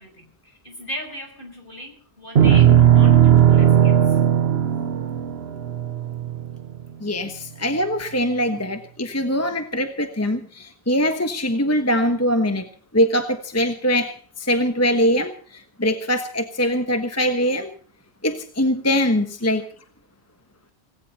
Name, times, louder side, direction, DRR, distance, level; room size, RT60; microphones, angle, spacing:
voice 1, 0.0-4.2 19.4-19.7, equal, 55° left, 4 dB, 5.9 m, -38 dB
sound 1, 2.4-6.8, right 10 dB, 75° right, 1.2 m, -16 dB
voice 2, 7.0-12.7 12.9-17.7 18.2-19.6, equal, 15° left, 7 dB, 1.3 m, -22 dB
18.5 x 17.0 x 4.3 m, 0.42 s
omnidirectional pair, 1.1 m